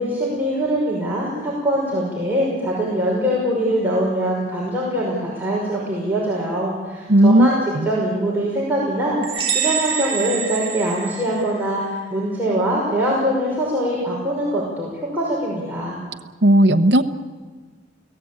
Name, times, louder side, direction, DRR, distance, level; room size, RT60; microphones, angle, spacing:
voice 1, 0.0-16.0, equal, 10° right, -6 dB, 5.7 m, -23 dB
voice 2, 7.1-7.5 7.7-7.9 16.4-17.0, right 1 dB, 55° right, 4 dB, 1.0 m, -13 dB
sound 1, 9.2-11.8, right 7 dB, 30° right, 4.9 m, -26 dB
30.0 x 17.5 x 8.8 m, 1.4 s
head